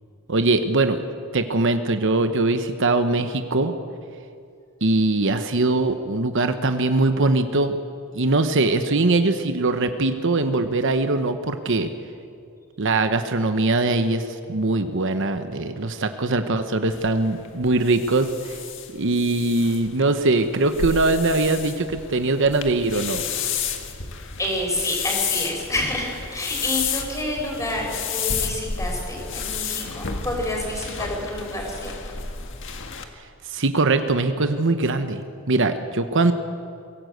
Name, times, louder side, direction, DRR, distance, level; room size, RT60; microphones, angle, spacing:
voice 1, 0.3-1.0 1.3-3.7 4.8-7.8 8.1-11.9 12.8-18.6 18.9-23.2 33.5-35.2 35.5-36.3, right 2 dB, 60° right, 9 dB, 1.0 m, -21 dB
sound 1, 16.9-33.0, left 6 dB, 60° left, 1.7 m, -31 dB
voice 2, 24.4-31.9 32.8-32.9, left 1 dB, 15° left, 0 dB, 5.3 m, -28 dB
23.0 x 17.0 x 8.0 m, 2.4 s
head